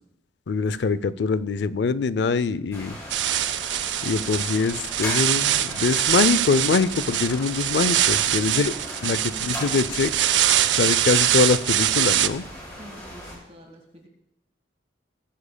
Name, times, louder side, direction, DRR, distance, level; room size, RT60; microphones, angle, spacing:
voice 1, 0.5-3.0 4.0-8.7 9.0-9.2 9.4-10.1 10.7-12.4, left 4 dB, 65° left, 16 dB, 0.4 m, -23 dB
sound 1, 2.7-13.4, left 1 dB, 15° left, 5.1 m, -38 dB
sound 2, 3.1-12.3, right 12 dB, 80° right, 0.5 m, -23 dB
voice 2, 8.5-9.8 12.7-14.1, equal, 35° right, 3 dB, 1.4 m, -46 dB
19.0 x 9.8 x 2.2 m, 0.80 s
head